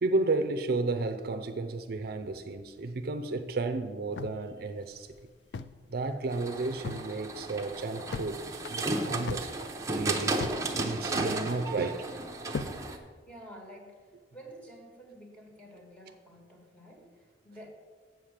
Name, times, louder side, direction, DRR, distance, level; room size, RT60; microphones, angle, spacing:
voice 1, 0.0-5.1 5.9-12.1, right 3 dB, 60° right, 0.5 m, -32 dB
sound 1, 4.2-5.9 6.1-6.2 6.6-7.1 7.5-8.3 8.6-10.7 10.9-11.6 12.1-12.8, left 5 dB, 75° left, 0.4 m, -39 dB
sound 2, 6.3-13.0, right 2 dB, 20° right, 0.8 m, -34 dB
voice 2, 13.3-17.7, equal, 10° left, 1.6 m, -50 dB
7.8 x 5.0 x 7.3 m
head